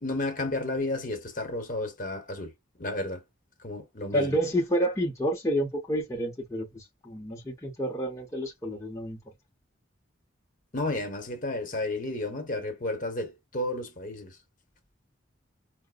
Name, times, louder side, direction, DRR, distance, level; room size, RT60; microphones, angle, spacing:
voice 1, 0.0-2.5 2.8-3.2 3.6-4.4 10.7-14.4, left 2 dB, 45° left, 0.9 m, -32 dB
voice 2, 4.1-9.2, equal, 15° left, 0.7 m, -29 dB
4.8 x 2.1 x 2.2 m
head